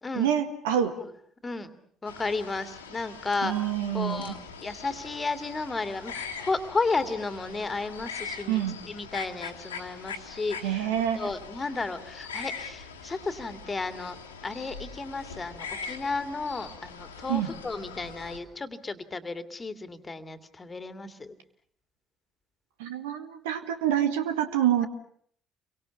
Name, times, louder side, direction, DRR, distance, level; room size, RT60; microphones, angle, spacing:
voice 1, 0.1-0.9 3.4-4.4 8.5-8.8 10.6-11.3 17.3-17.5 22.8-24.9, right 10 dB, 70° right, 8 dB, 1.9 m, -27 dB
voice 2, 2.0-3.5 3.9-10.9 11.1-14.2 14.4-21.3, left 3 dB, 25° left, 10 dB, 2.5 m, -33 dB
sound 1, 2.1-18.4, left 5 dB, 80° left, 2.4 m, -42 dB
29.5 x 24.0 x 7.2 m, 0.63 s
figure-of-eight pair, 50°, 0 cm